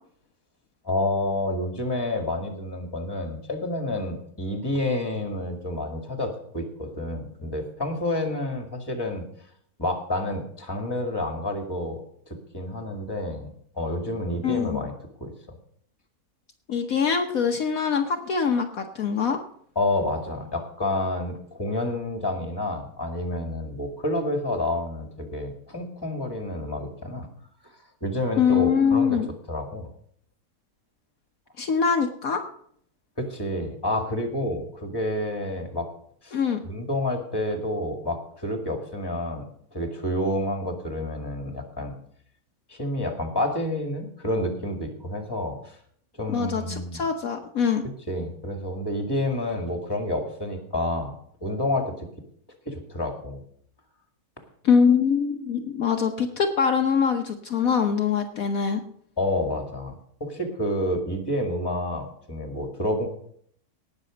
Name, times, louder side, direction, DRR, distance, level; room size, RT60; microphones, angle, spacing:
voice 1, 0.8-9.2 9.8-12.0 12.3-14.9 15.2-15.6 19.8-27.3 28.0-29.2 29.5-29.9 33.2-35.9 36.2-42.0 42.7-45.8 46.2-47.0 48.1-51.1 51.4-52.1 52.7-53.4 59.2-63.1, left 1 dB, 15° left, 4 dB, 2.1 m, -29 dB
voice 2, 14.4-14.8 16.7-19.4 28.4-29.3 31.6-32.4 36.3-36.6 46.3-47.8 54.6-58.8, left 6 dB, 65° left, 4 dB, 1.3 m, -23 dB
18.5 x 6.9 x 5.1 m, 0.63 s
omnidirectional pair, 1.7 m